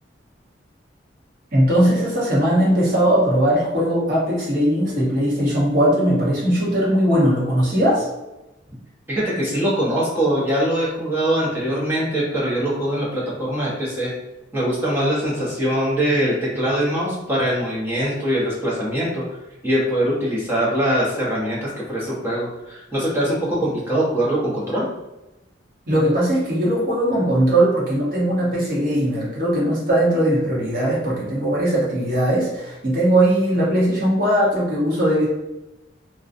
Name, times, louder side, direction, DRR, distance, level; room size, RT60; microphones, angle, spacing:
voice 1, 1.5-8.1 25.9-35.3, right 1 dB, 50° right, -6 dB, 0.9 m, -19 dB
voice 2, 9.1-14.1 14.5-19.2 19.6-24.9, equal, 10° right, -7 dB, 0.7 m, -22 dB
2.5 x 2.2 x 2.5 m, 0.98 s
head